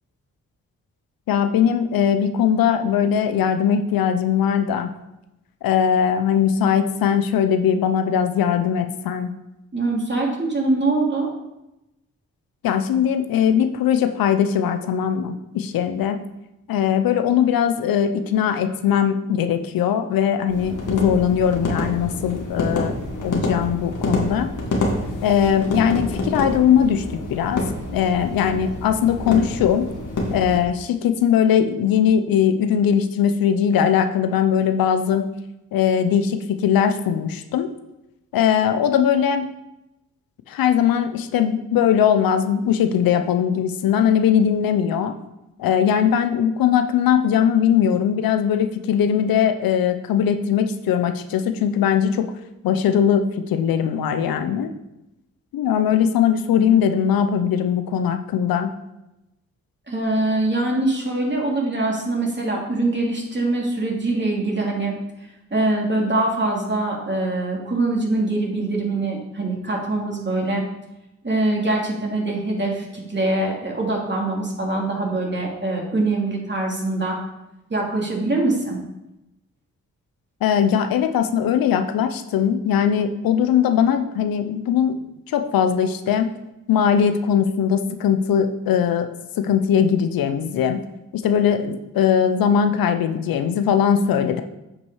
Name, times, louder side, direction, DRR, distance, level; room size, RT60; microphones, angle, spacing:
voice 1, 1.3-4.9 5.6-9.3 12.6-16.2 16.7-22.9 23.2-24.5 25.2-27.6 27.9-29.9 30.3-35.3 35.7-37.7 38.3-39.5 40.5-45.1 45.6-52.2 52.6-54.7 55.5-58.7 80.4-85.0 85.3-86.3 86.7-89.1 89.4-90.8 91.1-94.4, left 8 dB, 85° left, 8 dB, 0.7 m, -20 dB
voice 2, 9.7-11.3 59.9-64.9 65.5-70.6 71.2-77.2 77.7-78.8, right 2 dB, 30° right, -2 dB, 2.9 m, -23 dB
sound 1, 20.5-30.6, left 2 dB, 60° left, 2.1 m, -27 dB
8.5 x 5.3 x 4.8 m, 0.93 s
supercardioid pair, 45°, 34 cm